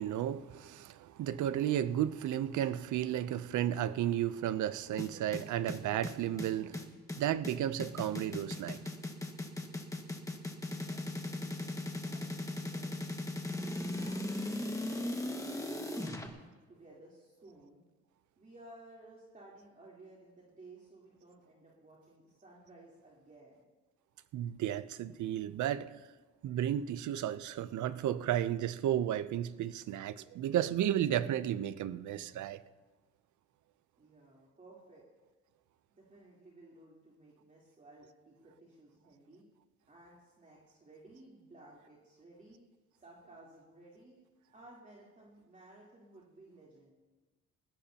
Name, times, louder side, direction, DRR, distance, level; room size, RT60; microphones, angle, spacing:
voice 1, 0.0-6.9 7.2-8.8 24.3-25.9 26.4-32.6, right 11 dB, 75° right, 0.7 m, -33 dB
sound 1, 5.0-16.3, left 1 dB, 10° left, 1.7 m, -38 dB
voice 2, 10.7-13.0 13.6-14.2 14.7-17.8 18.4-23.6 34.0-35.0 35.9-39.4 39.9-42.6 43.0-44.2 44.5-46.9, right 2 dB, 25° right, 3.6 m, -57 dB
21.0 x 16.5 x 2.9 m
cardioid pair, 90°, 30 cm